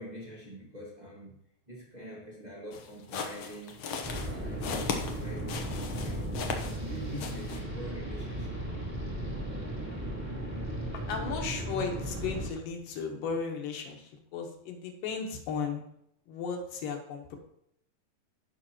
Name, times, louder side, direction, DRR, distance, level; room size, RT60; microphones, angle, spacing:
voice 1, 0.0-1.3 1.7-3.8 4.1-6.3 6.7-8.6, equal, 70° right, -6 dB, 0.4 m, -45 dB
sound 1, 2.7-6.9 7.2-7.6, left 5 dB, 90° left, 1.3 m, -37 dB
sound 2, 4.0-12.5, right 1 dB, 10° right, 0.9 m, -36 dB
voice 2, 11.1-15.8 16.3-17.4, left 5 dB, 75° left, 3 dB, 2.7 m, -35 dB
15.5 x 5.9 x 3.0 m, 0.72 s
omnidirectional pair, 4.1 m